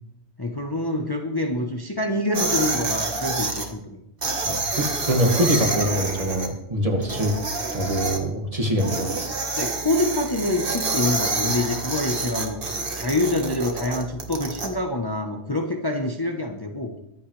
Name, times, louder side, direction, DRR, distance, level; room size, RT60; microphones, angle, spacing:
voice 1, 0.4-4.0 9.5-12.6 12.9-16.9, left 2 dB, 20° left, 3 dB, 1.0 m, -26 dB
sound 1, 2.3-3.7 4.2-6.5 7.0-8.2 8.8-14.7, right 3 dB, 55° right, 1.7 m, -27 dB
voice 2, 4.4-7.3 7.7-9.1, equal, 30° right, 2 dB, 2.0 m, -24 dB
23.5 x 8.7 x 3.3 m, 0.86 s
omnidirectional pair, 1.1 m